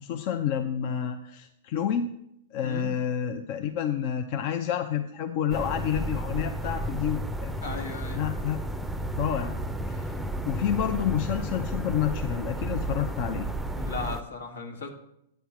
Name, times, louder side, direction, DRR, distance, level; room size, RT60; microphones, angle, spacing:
voice 1, 0.0-2.1 2.5-7.5 8.2-8.6 9.2-9.5 9.9-10.2 10.4-13.5, left 9 dB, 50° left, 7 dB, 0.6 m, -29 dB
sound 1, 5.5-14.2, right 1 dB, 5° right, 0.6 m, -32 dB
voice 2, 7.6-8.2 13.7-14.9, left 4 dB, 80° left, 3 dB, 1.8 m, -36 dB
9.2 x 4.5 x 7.2 m, 0.80 s
hypercardioid pair, 120°, 0 cm